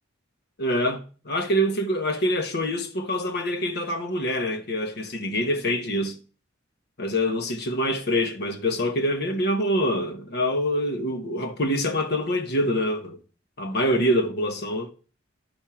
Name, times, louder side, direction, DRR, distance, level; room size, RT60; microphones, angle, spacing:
voice 1, 0.6-6.2 7.0-13.2 13.6-14.9, equal, 55° left, 1.1 m, -25 dB
10.5 x 4.5 x 4.8 m
head